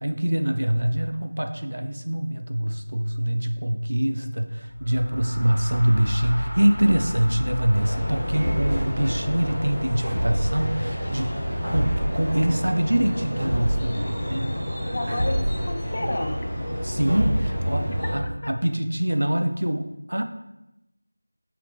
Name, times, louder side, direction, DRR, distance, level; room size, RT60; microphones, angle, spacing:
voice 1, 0.0-14.5 16.8-20.2, right 1 dB, 80° right, 6 dB, 0.4 m, -24 dB
sound 1, 4.7-16.3, left 1 dB, 65° left, 0.8 m, -36 dB
sound 2, 7.7-18.2, equal, 15° left, 0.8 m, -30 dB
sound 3, 8.3-9.0 10.0-10.7 11.6-12.3 13.4-14.0 15.1-15.8 17.1-17.7, equal, 30° right, 1.5 m, -27 dB
voice 2, 14.9-16.4 18.0-18.1 18.4-18.5, left 1 dB, 40° left, 5 dB, 0.4 m, -31 dB
5.0 x 2.8 x 3.4 m, 0.93 s
figure-of-eight pair, 175°, 0 cm